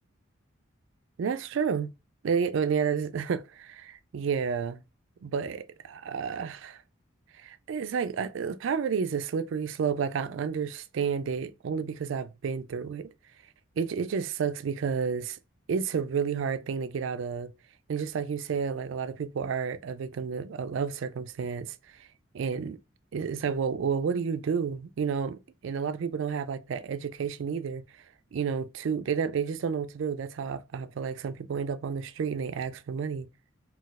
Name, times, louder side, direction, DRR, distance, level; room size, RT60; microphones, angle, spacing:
voice 1, 1.2-1.9 2.2-4.8 5.2-6.8 7.4-13.1 13.8-15.4 15.7-17.5 17.9-22.1 22.3-22.8 23.1-27.8 28.3-33.3, right 6 dB, 65° right, 0.3 m, -31 dB
4.0 x 2.3 x 2.3 m
head